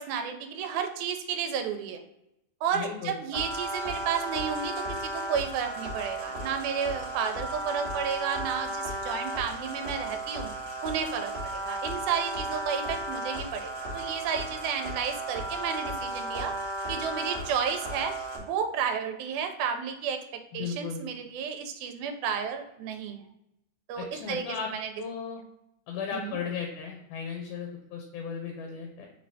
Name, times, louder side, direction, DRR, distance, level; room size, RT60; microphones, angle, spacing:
voice 1, 0.0-2.0 2.6-10.5 10.8-16.5 16.9-18.2 18.5-20.2 20.5-23.2 23.9-24.9 26.1-26.4, right 7 dB, 85° right, 5 dB, 2.0 m, -32 dB
voice 2, 2.7-3.2 20.5-21.1 24.0-24.7 25.0-25.4 25.9-29.1, left 6 dB, 85° left, 2 dB, 2.1 m, -36 dB
sound 1, 3.3-18.4, right 1 dB, 55° right, 1.0 m, -35 dB
4.7 x 3.2 x 2.6 m, 0.85 s
omnidirectional pair, 3.5 m